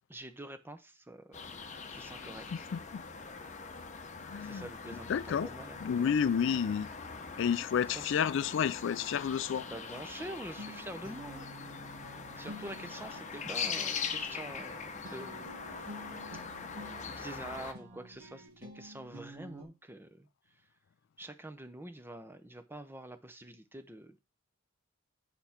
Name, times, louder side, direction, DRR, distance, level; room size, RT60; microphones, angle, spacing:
voice 1, 0.1-1.5 1.9-2.4 4.4-6.1 7.9-8.1 9.6-11.5 12.4-16.0 16.3-16.4 16.8-20.3 21.2-24.2, right 1 dB, 10° right, 0.7 m, -46 dB
sound 1, 1.3-17.7, left 5 dB, 35° left, 0.9 m, -42 dB
voice 2, 2.7-3.0 4.3-4.7 5.1-5.5 5.8-6.9 7.4-9.7, left 7 dB, 65° left, 0.3 m, -30 dB
Guitar, 10.6-19.7, equal, 80° right, 2.6 m, -50 dB
7.7 x 5.9 x 4.3 m
head